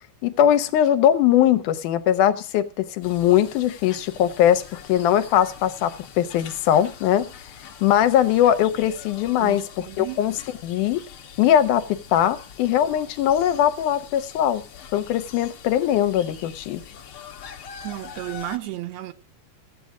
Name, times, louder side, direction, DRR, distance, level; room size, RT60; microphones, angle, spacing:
voice 1, 0.2-4.6 4.9-7.3 7.8-11.0 11.4-14.6 14.9-16.8, left 11 dB, 85° left, 2.2 m, -20 dB
sound 1, 3.0-18.6, left 8 dB, 60° left, 1.5 m, -43 dB
voice 2, 9.4-10.2 17.8-19.1, right 15 dB, 70° right, 1.8 m, -33 dB
14.5 x 8.4 x 4.8 m
omnidirectional pair, 3.6 m